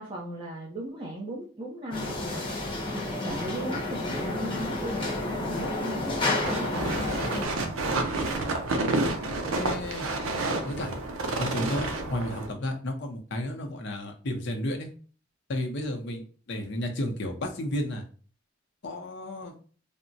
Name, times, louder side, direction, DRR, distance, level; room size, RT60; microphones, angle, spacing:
voice 1, 0.0-6.8, equal, 25° right, -3 dB, 0.5 m, -37 dB
sound 1, 1.9-7.5, left 2 dB, 25° left, 0.8 m, -30 dB
sound 2, 6.4-12.5, right 2 dB, 85° right, 0.6 m, -29 dB
voice 2, 7.6-8.0 9.6-10.1 10.6-10.9 11.4-14.9 15.5-18.0 18.8-19.5, left 1 dB, 60° left, 3 dB, 0.6 m, -32 dB
3.4 x 2.0 x 2.6 m, 0.41 s
head